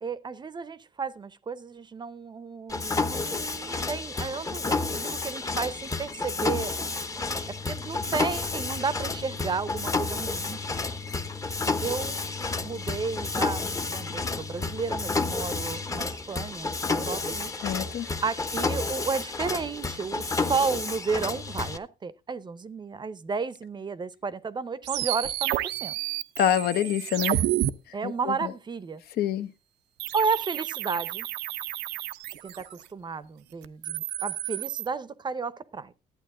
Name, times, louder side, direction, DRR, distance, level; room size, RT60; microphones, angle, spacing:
voice 1, 0.0-6.7 7.5-10.8 11.8-12.2 12.6-17.5 18.2-25.9 27.9-29.0 30.1-31.3 32.4-35.9, right 5 dB, 25° right, 0.6 m, -32 dB
Mechanisms, 2.7-21.8, left 3 dB, 20° left, 0.8 m, -30 dB
voice 2, 17.6-18.1 26.4-27.4 28.0-28.5 29.2-29.5, left 10 dB, 70° left, 0.8 m, -26 dB
sound 1, 24.8-27.7 30.0-32.8 33.6-34.9, right 14 dB, 80° right, 0.6 m, -30 dB
11.5 x 8.5 x 3.7 m
cardioid pair, 110°, 17 cm